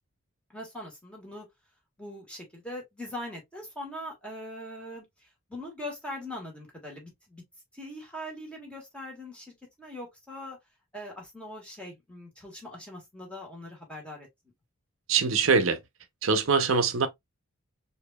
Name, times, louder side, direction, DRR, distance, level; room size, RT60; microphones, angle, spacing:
voice 1, 0.5-1.5 2.0-5.0 5.5-7.4 7.7-10.6 10.9-14.3, left 1 dB, 5° left, 1.6 m, -41 dB
voice 2, 15.1-15.8 16.2-17.1, right 5 dB, 65° right, 0.7 m, -23 dB
4.8 x 2.7 x 2.2 m
head